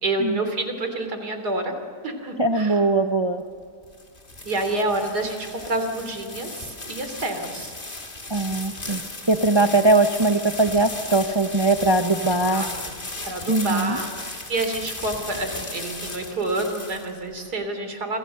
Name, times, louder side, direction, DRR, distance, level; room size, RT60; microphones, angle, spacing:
voice 1, 0.0-1.8 2.0-2.8 4.4-7.7 9.6-9.7 12.3-12.9 13.2-18.2, right 2 dB, 70° right, 6 dB, 3.7 m, -28 dB
voice 2, 2.4-3.4 8.3-9.0 9.3-12.6 13.5-14.0, right 2 dB, 25° right, 7 dB, 0.7 m, -20 dB
sound 1, 3.6-17.4, left 2 dB, 30° left, 2.9 m, -36 dB
29.5 x 25.5 x 6.6 m, 2.1 s
omnidirectional pair, 1.8 m